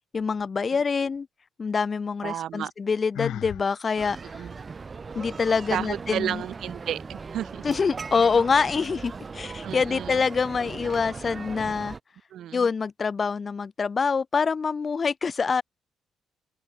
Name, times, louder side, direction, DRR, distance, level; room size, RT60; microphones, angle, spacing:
voice 1, 0.1-1.3 1.6-4.5 5.1-6.4 7.6-12.0 12.5-15.6, left 5 dB, 30° left, 4.1 m, -25 dB
voice 2, 2.2-2.7 4.2-4.5 5.7-7.6 9.6-10.2 12.3-12.7, right 11 dB, 65° right, 4.5 m, -32 dB
Sigh, 3.1-3.7, left 13 dB, 75° left, 6.7 m, -33 dB
sound 1, 4.0-12.0, right 4 dB, 25° right, 7.4 m, -38 dB
open air
cardioid pair, 140°, 0 cm